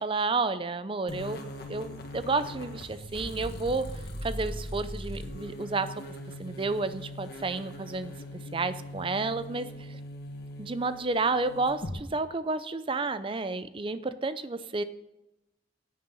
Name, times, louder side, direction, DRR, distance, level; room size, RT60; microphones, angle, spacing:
voice 1, 0.0-3.9 4.2-6.0 6.4-8.1 8.5-10.0 10.6-14.8, right 3 dB, 25° right, 13 dB, 0.5 m, -31 dB
sound 1, 1.1-12.0, equal, 55° left, 1.7 m, -40 dB
16.0 x 9.6 x 4.0 m, 0.95 s
head